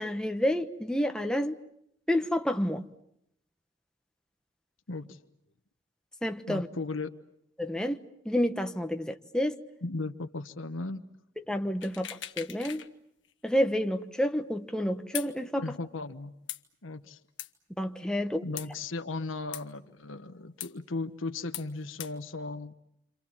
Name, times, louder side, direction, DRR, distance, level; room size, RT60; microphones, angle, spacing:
voice 1, 0.0-1.6 2.1-2.9 6.2-6.7 7.6-9.6 11.4-12.8 13.4-15.7 17.8-18.4, equal, 5° left, 1.2 m, -29 dB
voice 2, 4.9-5.2 6.5-7.1 9.8-11.0 15.6-16.3 16.8-17.2 18.4-22.7, left 3 dB, 90° left, 1.3 m, -36 dB
sound 1, 11.8-12.9 13.2-13.3 15.1-15.3 16.5-16.6 17.4-17.5 18.6-18.7 19.5-19.6 20.6-20.7 21.5-21.7 22.0-22.1, left 13 dB, 65° left, 1.4 m, -39 dB
29.0 x 27.0 x 7.3 m
head